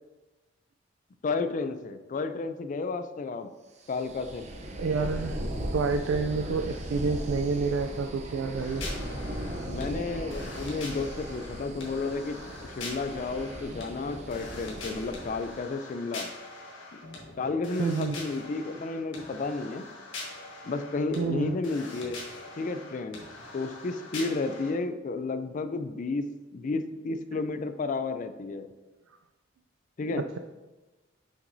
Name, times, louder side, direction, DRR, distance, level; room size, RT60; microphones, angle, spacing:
voice 1, 1.2-3.5 3.9-4.4 9.7-12.4 12.7-16.3 16.9-17.0 17.4-19.9 20.6-22.2 22.6-23.2 23.5-28.7 30.0-30.2, left 3 dB, 40° left, 10 dB, 0.4 m, -32 dB
sound 1, 3.8-15.6, right 1 dB, 35° right, 0.6 m, -38 dB
voice 2, 4.8-5.4 5.7-8.9 10.2-10.3 17.8-18.2 21.2-21.6, right 4 dB, 75° right, 6 dB, 0.3 m, -29 dB
sound 2, 8.6-24.7, left 2 dB, 70° left, 1.5 m, -43 dB
6.6 x 5.9 x 2.6 m, 1.2 s
head